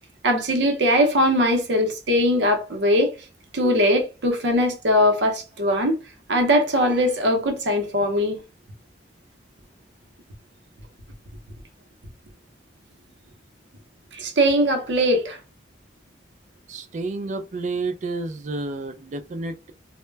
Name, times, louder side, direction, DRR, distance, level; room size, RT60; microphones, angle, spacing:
voice 1, 0.2-3.1 3.5-6.0 6.3-8.4 14.1-15.4, equal, 75° right, 0.7 m, -20 dB
voice 2, 16.7-19.7, right 3 dB, 40° right, 0.3 m, -30 dB
2.1 x 2.1 x 3.2 m
head